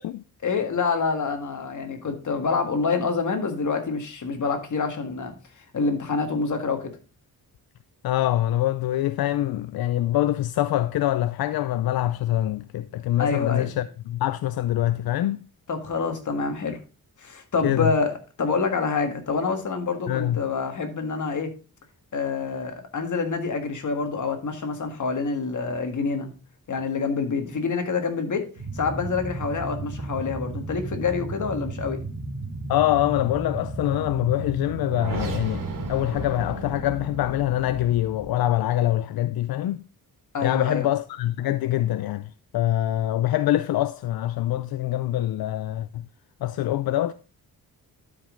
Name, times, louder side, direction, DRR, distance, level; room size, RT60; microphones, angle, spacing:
voice 1, 0.4-6.9 13.2-13.8 15.7-16.8 17.2-21.5 22.1-26.3 26.7-28.5 28.7-32.0 40.3-40.9, left 4 dB, 55° left, 1.8 m, -27 dB
voice 2, 8.0-15.4 17.6-17.9 20.1-20.5 32.7-35.6 35.9-39.8 40.4-46.1 46.4-47.1, left 13 dB, 80° left, 0.5 m, -24 dB
sound 1, 28.6-38.3, right 2 dB, 60° right, 2.4 m, -34 dB
12.0 x 5.3 x 3.7 m
wide cardioid pair, 115°, 37 cm